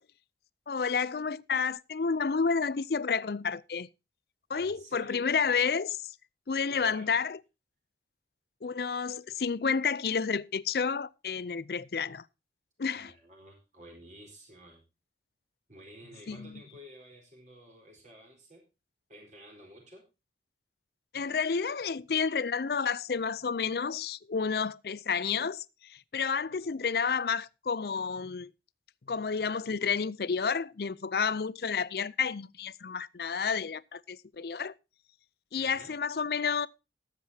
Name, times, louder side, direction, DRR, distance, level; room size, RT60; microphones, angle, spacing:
voice 1, 0.7-3.9 4.5-6.0 6.5-7.4 8.6-12.2 12.8-13.1 16.3-16.5 21.1-28.5 29.1-34.7 35.5-36.7, left 5 dB, 60° left, 0.5 m, -30 dB
voice 2, 4.5-5.5 6.7-7.1 12.9-14.8 15.7-18.6 19.1-20.0 35.6-36.0, equal, 40° right, 4.5 m, -52 dB
20.0 x 7.6 x 2.8 m
head